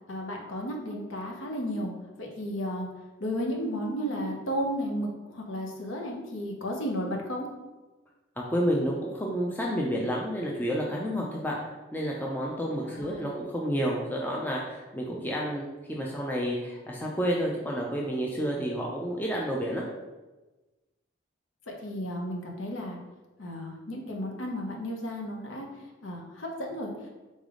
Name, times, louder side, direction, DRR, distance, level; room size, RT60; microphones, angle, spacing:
voice 1, 0.1-2.9 3.2-7.5 12.7-13.3 21.7-23.0 23.4-25.7 26.0-27.1, equal, 85° left, 0 dB, 0.8 m, -33 dB
voice 2, 8.4-11.6 11.9-19.8, equal, 10° left, -2 dB, 0.4 m, -30 dB
4.0 x 3.4 x 3.7 m, 1.1 s
head